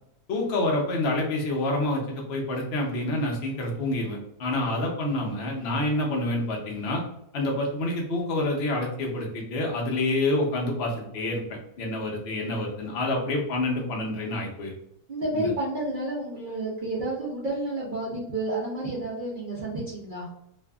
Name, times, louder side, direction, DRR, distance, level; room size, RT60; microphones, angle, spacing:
voice 1, 0.3-7.0 7.3-11.4 11.8-14.7 15.3-15.5, left 1 dB, 70° left, -1 dB, 0.5 m, -27 dB
voice 2, 15.1-20.3, right 1 dB, 65° right, -6 dB, 0.5 m, -30 dB
2.7 x 2.5 x 2.2 m, 0.77 s
omnidirectional pair, 1.8 m